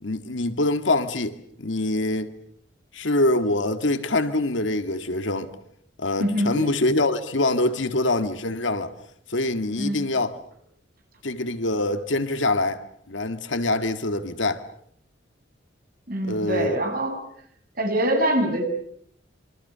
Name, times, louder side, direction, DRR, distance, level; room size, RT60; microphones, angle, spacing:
voice 1, 0.0-2.3 2.9-5.5 6.0-8.9 9.3-10.4 11.2-12.8 13.1-14.7 16.2-16.8, left 2 dB, 90° left, 2.0 m, -24 dB
voice 2, 6.2-6.7 9.8-10.1 16.1-17.2 17.7-18.6, right 1 dB, 50° right, 7.1 m, -24 dB
27.5 x 24.5 x 6.9 m
head